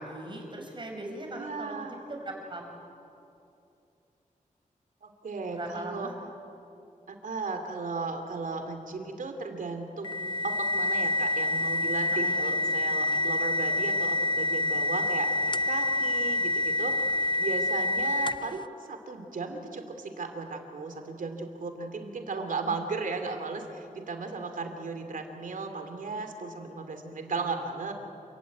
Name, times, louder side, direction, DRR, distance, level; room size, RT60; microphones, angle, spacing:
voice 1, 0.0-2.6 5.5-6.1 12.1-12.4, right 1 dB, 35° right, 2 dB, 5.4 m, -39 dB
voice 2, 1.3-2.0 5.0-6.1 7.1-16.9 17.4-27.9, right 4 dB, 70° right, 5 dB, 3.0 m, -36 dB
sound 1, 10.0-18.6, left 2 dB, 35° left, 0.5 m, -27 dB
28.0 x 16.0 x 9.4 m, 2.7 s
wide cardioid pair, 110°, 14 cm